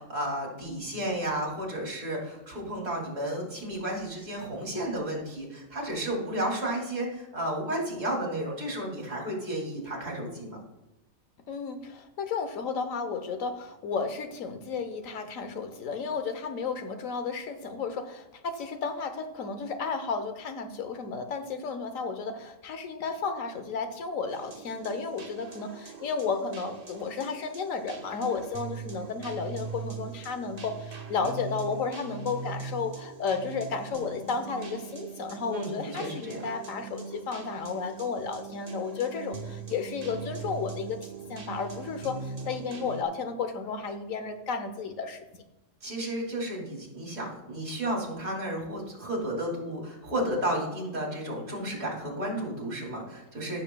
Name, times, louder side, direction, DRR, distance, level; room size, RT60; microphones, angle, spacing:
voice 1, 0.0-10.6 35.5-36.4 45.8-53.6, right 1 dB, 70° right, -1 dB, 3.0 m, -32 dB
voice 2, 11.5-41.0 41.3-45.2, left 5 dB, 80° left, 8 dB, 1.3 m, -33 dB
sound 1, 24.3-43.0, right 4 dB, 35° right, 0.8 m, -41 dB
15.5 x 6.7 x 2.2 m, 0.93 s
omnidirectional pair, 1.4 m